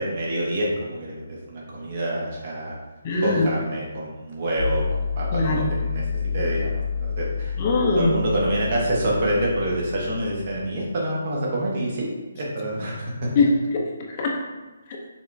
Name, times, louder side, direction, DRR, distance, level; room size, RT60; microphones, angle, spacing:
voice 1, 0.0-2.8 3.2-7.5 7.9-12.1 12.3-13.3, right 1 dB, 40° right, -3 dB, 1.2 m, -27 dB
voice 2, 3.0-3.5 5.3-5.7 7.6-8.2 13.4-14.4 14.9-15.0, left 2 dB, 30° left, -1 dB, 0.6 m, -22 dB
sound 1, 4.6-10.7, left 6 dB, 75° left, 1.0 m, -29 dB
5.7 x 3.4 x 2.7 m, 1.1 s
hypercardioid pair, 165°, 0 cm